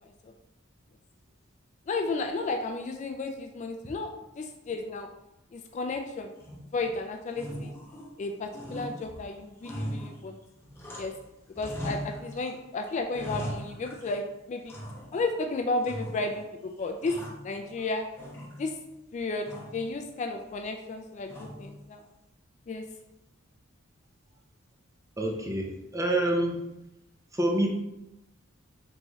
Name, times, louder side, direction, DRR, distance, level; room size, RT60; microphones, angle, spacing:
voice 1, 1.9-4.1 4.4-5.1 5.5-6.3 6.7-7.7 8.2-10.3 11.0-11.1 11.6-14.2 14.5-14.7 15.1-17.2 17.4-18.1 18.6-18.7 19.1-19.5 19.7-22.0 22.7-22.8, left 3 dB, 35° left, 4 dB, 0.3 m, -33 dB
sound 1, 6.4-6.9 7.3-8.2 8.5-11.3 11.5-12.5 12.9-14.2 14.7-15.3 15.8-16.5 16.8-17.9 18.2-18.9 19.4-19.9 21.3-21.8, equal, 10° left, 0.9 m, -40 dB
voice 2, 25.2-26.6 27.3-27.7, right 1 dB, 15° right, 0 dB, 0.6 m, -27 dB
3.5 x 3.1 x 4.0 m, 0.91 s
head